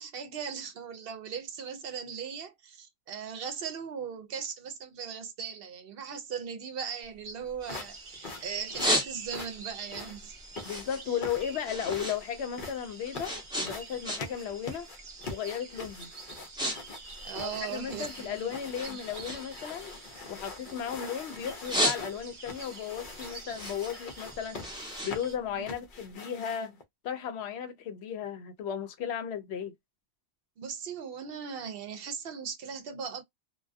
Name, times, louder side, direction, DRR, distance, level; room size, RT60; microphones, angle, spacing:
voice 1, 0.0-10.4 11.1-11.2 17.2-18.5 18.9-19.0 25.6-25.7 30.6-33.2, right 7 dB, 65° right, 0.8 m, -38 dB
sound 1, 7.0-8.1 8.5-9.6 10.0-12.2 12.5-14.5 14.8-15.1 15.7-15.9 16.2-16.8 17.0-18.3 18.7-21.1 21.4-22.5 22.9-26.0, equal, 5° right, 0.7 m, -33 dB
sound 2, 7.6-26.8, left 3 dB, 55° left, 0.8 m, -44 dB
sound 3, 7.6-25.3, right 4 dB, 40° right, 0.5 m, -48 dB
voice 2, 10.6-14.9 15.3-16.1 17.4-20.0 20.3-24.6 25.0-29.7, left 8 dB, 85° left, 0.8 m, -35 dB
2.3 x 2.3 x 2.4 m
omnidirectional pair, 1.1 m